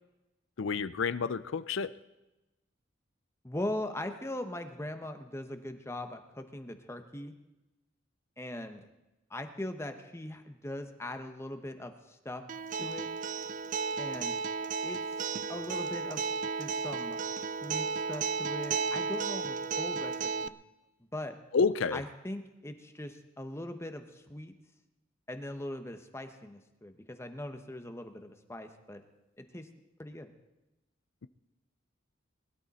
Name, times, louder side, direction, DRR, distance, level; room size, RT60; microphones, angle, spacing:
voice 1, 0.6-1.9 21.5-22.0, left 5 dB, 75° left, 15 dB, 0.5 m, -29 dB
voice 2, 3.4-7.3 8.4-8.8 9.3-12.4 12.8-13.1 14.0-14.4 14.8-15.2 15.5-16.3 16.5-17.2 17.5-20.6 21.0-21.4 21.9-24.5 25.3-29.0 29.4-29.7 30.0-30.3, left 1 dB, 15° left, 7 dB, 0.9 m, -40 dB
Acoustic guitar, 12.5-20.5, right 5 dB, 40° right, 0.4 m, -34 dB
21.0 x 12.0 x 4.2 m, 1.0 s
head